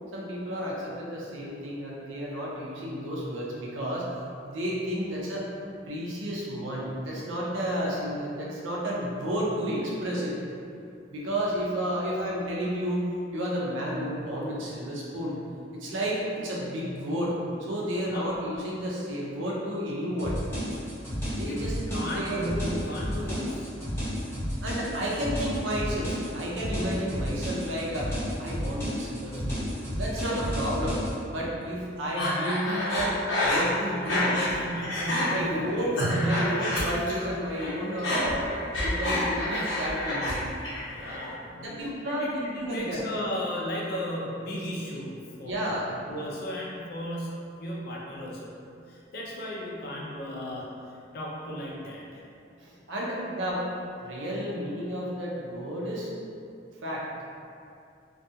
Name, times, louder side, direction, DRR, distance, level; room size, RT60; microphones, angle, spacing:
voice 1, 0.1-4.1 4.4-5.5 5.9-10.4 11.1-13.1 13.3-15.4 15.7-20.4 21.4-22.8 23.2-23.4 24.6-28.1 28.4-29.7 30.0-31.0 31.3-33.1 33.4-34.5 35.3-38.5 38.8-40.4 41.6-43.0 45.4-45.9 52.6-53.7 54.0-56.1 56.8-57.1, equal, 80° right, -4 dB, 0.5 m, -31 dB
voice 2, 18.1-18.4 21.5-21.6 21.9-23.7 34.3-36.5 40.9-41.7 42.2-45.8 46.1-50.7 51.1-52.2, equal, 50° left, -4 dB, 0.4 m, -35 dB
sound 1, 20.2-31.1, equal, 10° left, 0.7 m, -32 dB
Breathing, 32.2-34.5 34.8-35.3 35.7-37.3 37.5-40.4 40.6-41.3, left 1 dB, 90° left, 0.9 m, -28 dB
2.3 x 2.2 x 2.7 m, 2.5 s
head